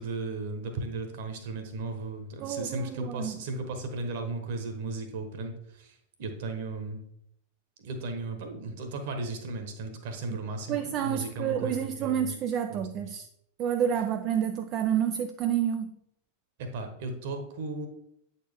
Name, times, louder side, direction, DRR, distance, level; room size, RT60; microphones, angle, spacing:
voice 1, 0.0-7.0 7.8-12.3 12.7-13.1 16.6-17.9, right 3 dB, 55° right, 1.3 m, -36 dB
voice 2, 2.4-3.4 10.3-10.4 10.7-13.3 13.6-15.9, right 9 dB, 35° right, 0.4 m, -29 dB
8.2 x 4.3 x 3.5 m
figure-of-eight pair, 90°, 0 cm